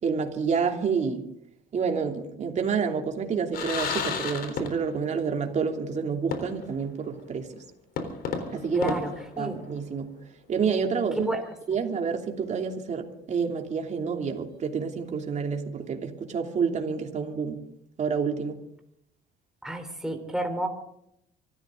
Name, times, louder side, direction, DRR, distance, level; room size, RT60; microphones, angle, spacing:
voice 1, 0.0-1.2 1.7-7.5 8.5-8.9 9.4-10.1 10.5-11.4 11.7-17.6 18.0-18.6, right 6 dB, 45° right, 3 dB, 2.9 m, -28 dB
sound 1, 3.5-5.1 5.4-5.5 6.3-6.8 7.2-7.3 8.0-9.9, left 5 dB, 65° left, 3.8 m, -33 dB
voice 2, 8.7-9.6 11.2-11.4 19.6-20.7, right 1 dB, 5° right, 5 dB, 3.7 m, -30 dB
25.0 x 13.5 x 3.8 m, 0.75 s
cardioid pair, 110°, 17 cm